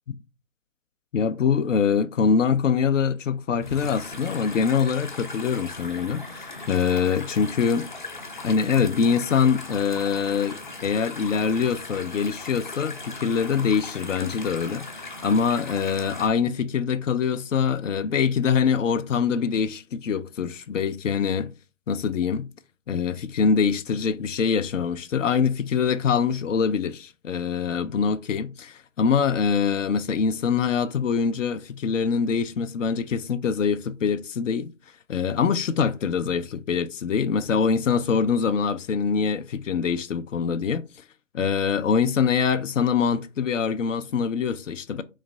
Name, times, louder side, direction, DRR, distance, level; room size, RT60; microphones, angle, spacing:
voice 1, 1.1-7.9 8.4-14.9 15.2-21.5 21.9-22.5 22.9-34.7 35.1-40.8 41.3-45.0, left 6 dB, 80° left, 0.5 m, -24 dB
sound 1, 3.6-16.3, left 2 dB, 40° left, 0.6 m, -38 dB
3.2 x 3.2 x 3.8 m
hypercardioid pair, 180°, 38 cm